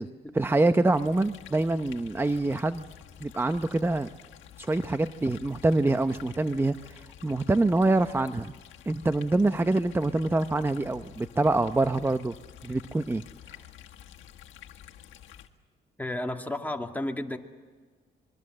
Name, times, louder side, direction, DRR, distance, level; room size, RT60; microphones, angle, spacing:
voice 1, 0.3-2.9 3.2-4.1 4.6-8.5 8.9-12.4 12.6-13.2, right 2 dB, 10° right, 11 dB, 0.7 m, -25 dB
sound 1, 0.9-15.5, left 10 dB, 75° left, 1.8 m, -49 dB
voice 2, 16.0-17.4, left 1 dB, 10° left, 3 dB, 2.3 m, -32 dB
26.0 x 23.0 x 7.7 m, 1.5 s
cardioid pair, 90°, 20 cm